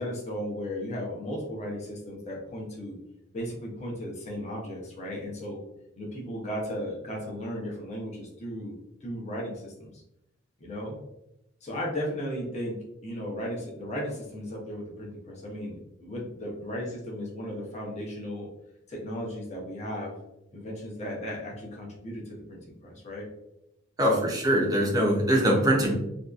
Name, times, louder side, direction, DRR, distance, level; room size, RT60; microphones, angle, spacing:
voice 1, 0.0-3.0 3.3-5.6 6.0-9.9 10.6-11.0 11.6-12.8 13.0-18.5 18.9-20.2 20.5-23.3 24.1-24.3, equal, 35° left, -2 dB, 0.7 m, -35 dB
voice 2, 24.0-25.9, equal, 20° right, -1 dB, 0.5 m, -22 dB
2.7 x 2.3 x 2.3 m, 0.85 s
head